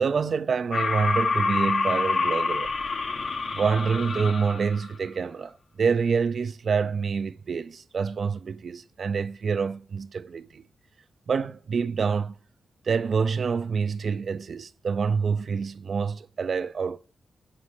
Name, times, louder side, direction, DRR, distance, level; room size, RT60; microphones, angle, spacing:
voice 1, 0.0-2.7 3.5-10.6 11.3-12.4 12.8-17.0, right 5 dB, 55° right, 0.5 m, -27 dB
sound 1, 0.7-4.9, left 4 dB, 50° left, 0.8 m, -27 dB
8.6 x 4.8 x 6.3 m
wide cardioid pair, 135°, 0 cm